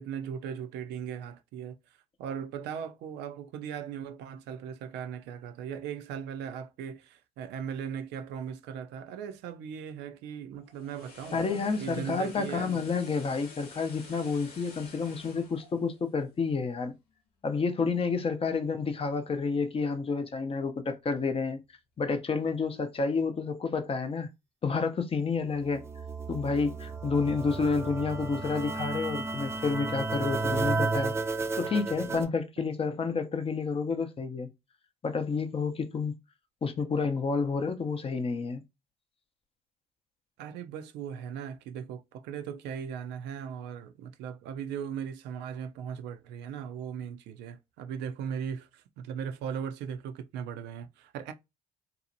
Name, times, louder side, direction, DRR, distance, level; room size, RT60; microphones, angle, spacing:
voice 1, 0.0-11.4 11.8-12.8 32.6-32.7 40.4-51.3, right 8 dB, 65° right, 0.4 m, -38 dB
sound 1, 10.5-16.7 17.1-17.3, left 4 dB, 85° left, 0.8 m, -50 dB
voice 2, 11.3-16.9 17.4-21.6 22.0-24.3 24.6-25.8 26.3-31.1 31.6-34.5 35.0-36.2 36.6-38.6, left 4 dB, 30° left, 0.6 m, -30 dB
sound 2, 25.7-32.2, right 3 dB, 15° right, 0.5 m, -32 dB
2.7 x 2.1 x 2.6 m
hypercardioid pair, 60°, 19 cm